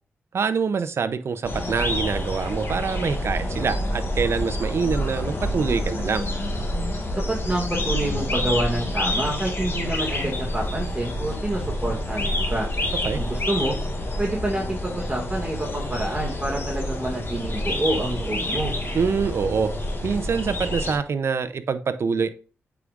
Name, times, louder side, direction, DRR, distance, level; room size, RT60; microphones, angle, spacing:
voice 1, 0.3-6.3 13.0-13.2 18.9-19.7 20.0-22.3, right 5 dB, 60° right, 0.6 m, -25 dB
sound 1, 1.4-21.0, left 1 dB, 50° left, 1.5 m, -28 dB
voice 2, 7.2-12.7 13.2-13.8 14.2-18.7, right 1 dB, 20° right, 1.9 m, -27 dB
8.3 x 4.9 x 2.5 m
cardioid pair, 70°, 5 cm